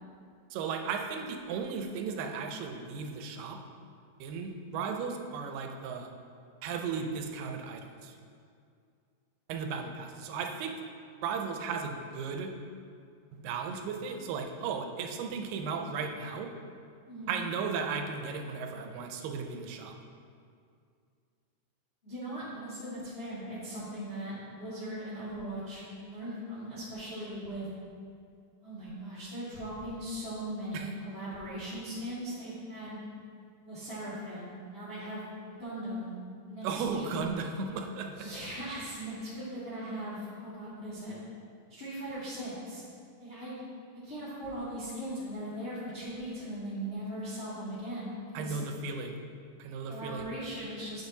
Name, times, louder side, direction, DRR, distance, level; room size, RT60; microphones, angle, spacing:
voice 1, 0.5-3.6 4.2-6.1 6.6-8.2 9.5-10.8 11.2-12.5 13.4-16.5 17.3-20.0 30.7-30.9 36.6-38.3 48.3-49.2 49.6-50.3, right 5 dB, 85° right, 4 dB, 2.3 m, -35 dB
voice 2, 17.1-17.4 22.0-27.7 28.6-33.0 33.6-35.2 35.6-36.1 36.4-37.1 38.2-41.1 41.7-42.8 43.2-43.6 44.0-48.6 49.8-51.0, right 1 dB, 75° left, -10 dB, 0.5 m, -39 dB
7.9 x 7.0 x 2.7 m, 2.3 s
omnidirectional pair, 3.9 m